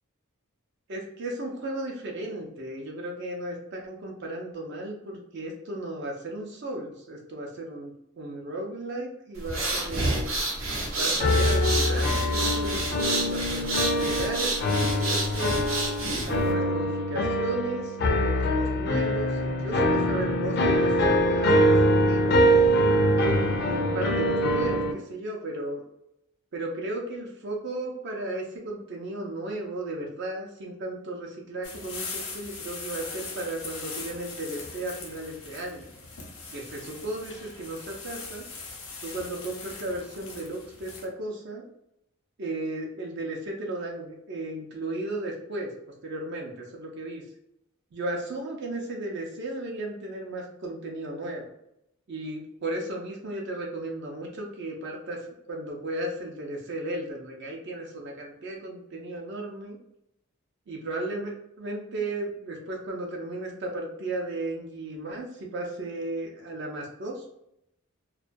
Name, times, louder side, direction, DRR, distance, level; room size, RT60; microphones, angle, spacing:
voice 1, 0.9-10.3 10.9-15.6 16.2-22.4 23.6-25.8 26.5-35.9 36.5-38.5 39.0-41.6 42.4-45.7 46.0-47.2 47.9-51.5 52.1-59.8 60.7-67.2, right 1 dB, 55° right, -1 dB, 0.5 m, -35 dB
sound 1, 9.4-16.5, right 2 dB, 90° right, 0.7 m, -29 dB
sound 2, 11.2-24.9, equal, 50° left, 0.4 m, -24 dB
sound 3, 31.6-41.1, left 4 dB, 90° left, 0.7 m, -40 dB
2.3 x 2.2 x 2.5 m, 0.79 s
head